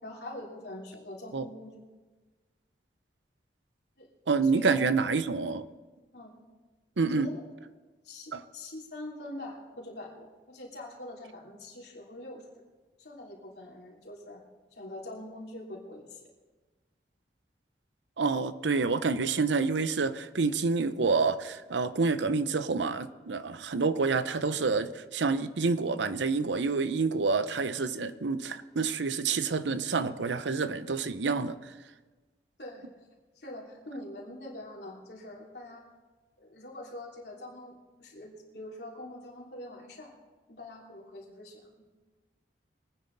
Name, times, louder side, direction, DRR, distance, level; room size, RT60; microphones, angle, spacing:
voice 1, 0.0-1.7 4.0-4.1 4.4-4.8 6.1-6.3 7.0-7.4 8.0-12.4 13.0-14.4 14.7-16.2 32.6-32.9 33.3-35.9 36.4-40.1 40.5-41.9, left 1 dB, 65° left, -2 dB, 3.2 m, -44 dB
voice 2, 4.3-5.6 7.0-7.3 8.3-8.4 18.2-31.7, right 4 dB, 90° right, 12 dB, 0.7 m, -28 dB
23.5 x 9.7 x 4.0 m, 1.3 s
head